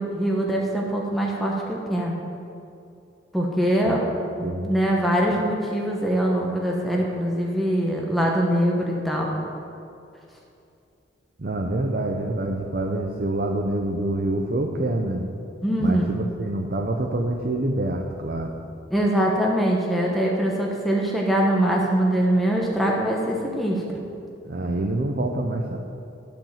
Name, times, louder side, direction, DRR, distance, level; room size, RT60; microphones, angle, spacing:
voice 1, 0.0-2.1 3.3-4.0 4.4-9.5 15.6-16.0 18.9-24.0, right 1 dB, ahead, -2 dB, 1.0 m, -23 dB
voice 2, 3.8-4.7 11.4-15.3 15.8-18.5 24.4-25.8, right 1 dB, 50° right, 1 dB, 0.7 m, -26 dB
12.0 x 5.2 x 7.4 m, 2.6 s
head